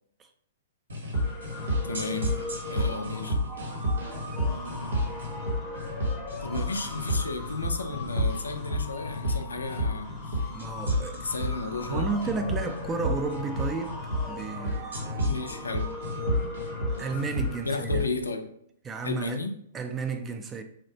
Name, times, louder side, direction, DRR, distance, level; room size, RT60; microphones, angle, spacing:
sound 1, 0.9-18.1, left 1 dB, 75° right, 0.9 m, -30 dB
sound 2, 1.1-17.6, left 2 dB, 10° left, 0.7 m, -40 dB
voice 1, 1.8-2.4 2.7-3.4 4.5-5.3 6.4-10.4 11.2-12.1 15.2-16.0 16.8-17.0 17.6-18.5 19.0-19.6, left 3 dB, 85° left, 6 dB, 0.4 m, -34 dB
voice 2, 10.5-11.3 11.8-14.0 14.2-15.3 17.0-18.1 18.8-19.4 19.7-20.6, right 4 dB, 20° right, 7 dB, 0.3 m, -33 dB
3.1 x 2.1 x 2.7 m, 0.69 s
hypercardioid pair, 115°, 0 cm